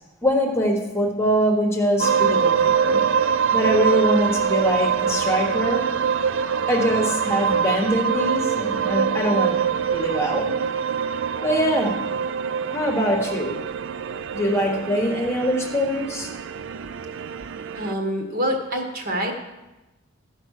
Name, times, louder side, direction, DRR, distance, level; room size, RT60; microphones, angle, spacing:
voice 1, 0.2-3.0 3.5-5.8 6.7-10.5 11.4-12.0 12.7-13.5 14.3-16.3, equal, 10° left, 0 dB, 1.3 m, -23 dB
sound 1, 2.0-17.9, right 7 dB, 60° right, 0.4 m, -24 dB
voice 2, 17.7-19.4, equal, 45° right, 2 dB, 1.7 m, -26 dB
14.5 x 5.4 x 6.5 m, 1.0 s
head